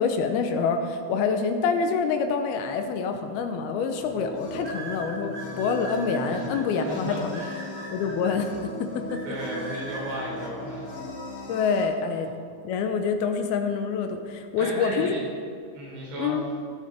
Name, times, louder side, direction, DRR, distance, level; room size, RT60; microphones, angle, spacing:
voice 1, 0.0-7.4 7.9-9.4 11.5-12.4 12.6-15.2 16.2-16.4, left 5 dB, 80° left, 6 dB, 2.6 m, -26 dB
sound 1, 3.4-3.5 4.6-6.6 7.3-8.4 9.1-10.2, right 3 dB, 35° right, 2.0 m, -40 dB
sound 2, 3.9-11.8, left 1 dB, 55° left, 2.5 m, -38 dB
voice 2, 6.3-7.6 9.3-10.9 14.6-15.2 15.7-16.4, right 1 dB, 80° right, -4 dB, 5.4 m, -35 dB
18.5 x 6.9 x 4.9 m, 2.3 s
omnidirectional pair, 4.7 m